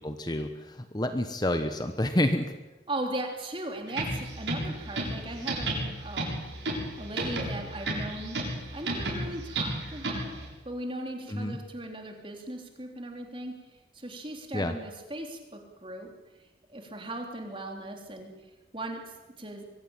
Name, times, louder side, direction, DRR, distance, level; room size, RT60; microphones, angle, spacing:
voice 1, 0.0-2.5 11.3-11.6 14.5-14.7, left 1 dB, 25° left, 8 dB, 1.1 m, -28 dB
voice 2, 2.9-6.4 7.0-8.4 8.7-13.5 13.9-16.1 16.7-18.3 18.7-19.1 19.4-19.7, right 1 dB, 30° right, 3 dB, 3.5 m, -38 dB
sound 1, 3.9-10.4, right 1 dB, 90° right, 7.6 m, -33 dB
23.5 x 16.0 x 9.1 m, 1.1 s
head